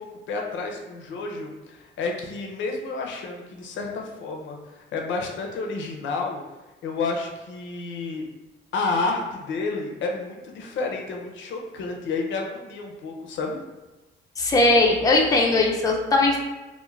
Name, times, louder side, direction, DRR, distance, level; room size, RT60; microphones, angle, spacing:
voice 1, 0.0-6.4 6.8-8.3 8.7-13.6, left 3 dB, 70° left, 1 dB, 0.5 m, -30 dB
voice 2, 14.4-16.4, left 2 dB, 20° left, 0 dB, 0.4 m, -19 dB
2.4 x 2.1 x 3.1 m, 1.1 s
cardioid pair, 90°, 20 cm